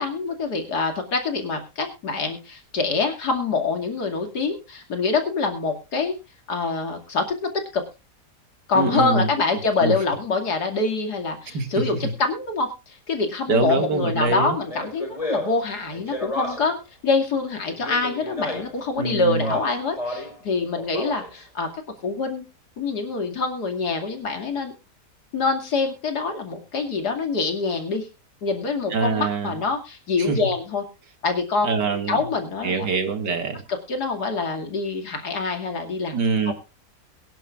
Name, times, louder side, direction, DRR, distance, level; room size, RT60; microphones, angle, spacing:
voice 1, 0.0-6.2 6.5-7.8 8.7-16.7 17.0-21.7 22.0-22.4 22.8-24.7 25.3-28.1 28.4-30.8 31.2-32.9 33.9-36.1 36.5-36.6, left 4 dB, 70° left, 4 dB, 2.9 m, -25 dB
voice 2, 8.7-9.3 9.8-10.0 11.5-11.9 13.5-14.6 19.0-19.6 28.9-29.5 30.2-30.5 31.6-32.2 32.6-33.6 36.1-36.5, right 3 dB, 85° right, 6 dB, 2.7 m, -24 dB
Speech, 14.7-16.8 17.6-18.8 19.3-20.4 20.8-21.4, left 1 dB, 20° left, 4.7 m, -32 dB
23.0 x 10.5 x 2.4 m, 0.30 s
omnidirectional pair, 1.8 m